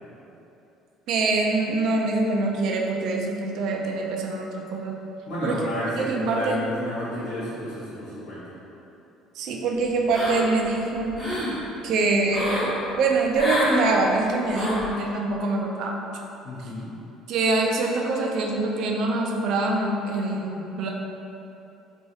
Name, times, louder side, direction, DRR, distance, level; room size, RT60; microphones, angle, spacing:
voice 1, 1.1-5.0 5.4-5.6 5.9-6.6 9.4-11.2 11.8-16.0 16.6-16.7 17.3-20.9, right 3 dB, 55° right, 1 dB, 0.3 m, -24 dB
voice 2, 5.3-8.5 16.4-17.0, left 1 dB, 60° left, -9 dB, 1.1 m, -31 dB
sound 1, 10.1-10.6 11.0-11.5 12.3-12.7 13.3-13.8 14.5-14.9, left 1 dB, 30° left, 1.1 m, -28 dB
3.1 x 2.6 x 2.7 m, 2.9 s
cardioid pair, 170°, 0 cm